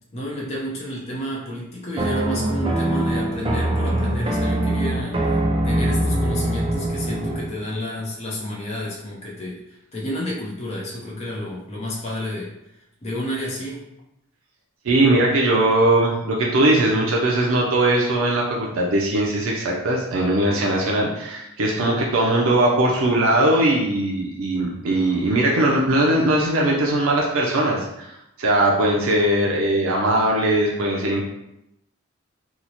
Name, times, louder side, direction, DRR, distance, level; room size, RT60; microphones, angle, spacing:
voice 1, 0.1-5.4 5.6-12.5 13.0-13.8, equal, 30° left, -5 dB, 0.6 m, -30 dB
sound 1, 2.0-7.5, right 1 dB, 25° right, 0.4 m, -23 dB
voice 2, 14.8-31.2, right 1 dB, 80° right, -2 dB, 0.5 m, -20 dB
3.0 x 2.0 x 3.9 m, 0.85 s
head